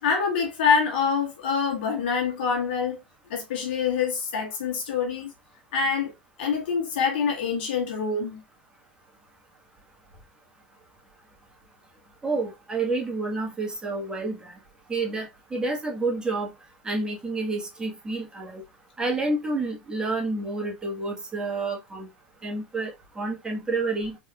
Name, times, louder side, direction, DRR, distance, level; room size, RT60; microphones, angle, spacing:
voice 1, 0.0-3.0 3.3-5.3 5.7-6.1 6.4-8.4, left 6 dB, 75° left, 1.7 m, -25 dB
voice 2, 12.2-14.6 14.9-16.5 16.8-18.6 19.0-22.1 22.4-24.2, right 3 dB, 15° right, 1.5 m, -29 dB
4.1 x 3.4 x 2.4 m
hypercardioid pair, 95°, 6 cm